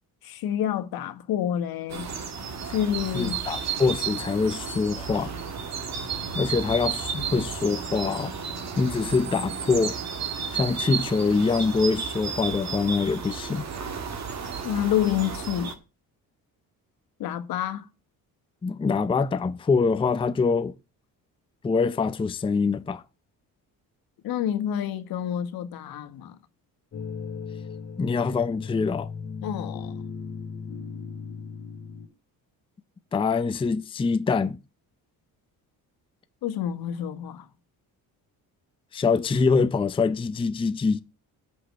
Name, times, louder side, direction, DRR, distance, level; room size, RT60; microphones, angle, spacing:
voice 1, 0.2-2.1 2.7-3.4 14.6-15.7 17.2-17.9 24.2-26.4 29.4-30.0 36.4-37.4, left 10 dB, 80° left, 1.5 m, -28 dB
sound 1, 1.9-15.7, right 6 dB, 50° right, 1.9 m, -33 dB
voice 2, 3.1-5.3 6.3-8.3 8.8-10.0 10.5-13.6 18.6-20.7 21.6-23.0 28.0-29.1 33.1-34.6 38.9-41.0, left 4 dB, 15° left, 0.5 m, -24 dB
cellos three chords, 5.1-13.0, right 3 dB, 85° right, 3.3 m, -51 dB
sound 2, 26.9-32.1, left 5 dB, 40° left, 2.2 m, -37 dB
8.2 x 6.3 x 6.5 m
cardioid pair, 125°, 36 cm